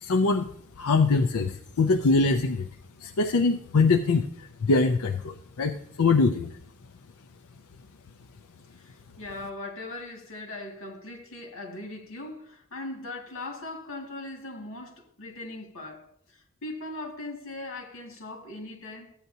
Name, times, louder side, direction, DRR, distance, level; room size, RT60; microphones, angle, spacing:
voice 1, 0.0-0.5 0.8-2.7 3.0-6.5, left 3 dB, 90° left, 0.5 m, -23 dB
voice 2, 8.8-19.1, left 2 dB, 65° left, 2.1 m, -39 dB
14.0 x 9.2 x 2.7 m
head